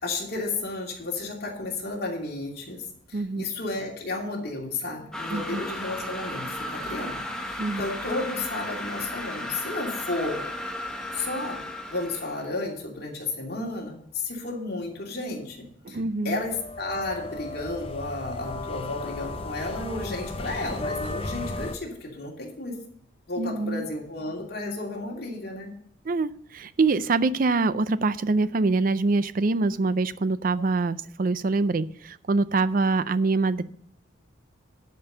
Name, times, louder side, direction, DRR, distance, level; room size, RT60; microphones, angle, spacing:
voice 1, 0.0-2.8 3.1-10.4 11.1-11.6 11.9-22.8 23.3-25.7, left 2 dB, 55° left, -1 dB, 2.8 m, -33 dB
voice 2, 3.1-3.4 5.3-5.6 7.6-7.8 15.8-16.4 23.4-23.9 26.1-33.6, right 3 dB, 45° right, 15 dB, 0.5 m, -25 dB
sound 1, 5.1-12.5, left 1 dB, 5° left, 1.2 m, -35 dB
sound 2, 16.3-21.8, left 2 dB, 30° left, 0.7 m, -35 dB
11.0 x 5.3 x 6.9 m, 0.63 s
head